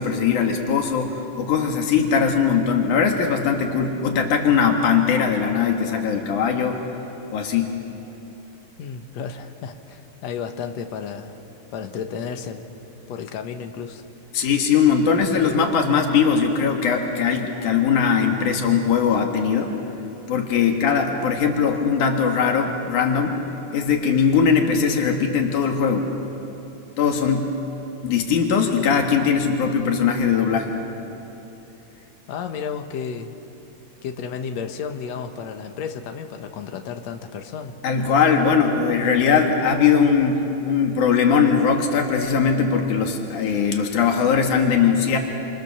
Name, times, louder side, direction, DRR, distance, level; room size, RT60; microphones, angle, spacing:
voice 1, 0.0-6.8 7.3-7.7 14.3-19.7 20.3-23.4 23.7-26.1 27.0-27.5 28.0-30.7 37.8-45.2, left 6 dB, 85° left, 2 dB, 3.1 m, -20 dB
voice 2, 8.8-11.4 11.7-12.7 13.1-14.0 20.6-20.7 32.3-33.4 34.0-37.8, left 6 dB, 65° left, 6 dB, 2.4 m, -32 dB
27.5 x 27.0 x 6.9 m, 2.9 s
omnidirectional pair, 3.4 m